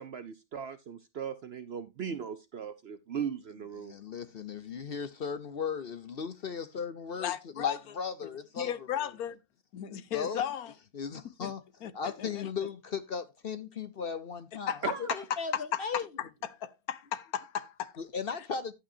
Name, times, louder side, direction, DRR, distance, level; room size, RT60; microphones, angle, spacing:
voice 1, 0.0-4.0 14.8-15.2, right 7 dB, 55° right, 0.7 m, -38 dB
voice 2, 3.8-9.1 9.9-10.4 10.9-11.6 11.9-14.8 15.1-16.1 18.0-18.7, left 6 dB, 50° left, 0.8 m, -37 dB
voice 3, 7.2-7.8 8.6-9.4 9.7-10.7 11.4-11.5 11.8-12.5 14.7-14.8 15.5-15.8 16.4-17.9, left 9 dB, 75° left, 1.3 m, -35 dB
11.0 x 8.7 x 2.7 m
omnidirectional pair, 1.6 m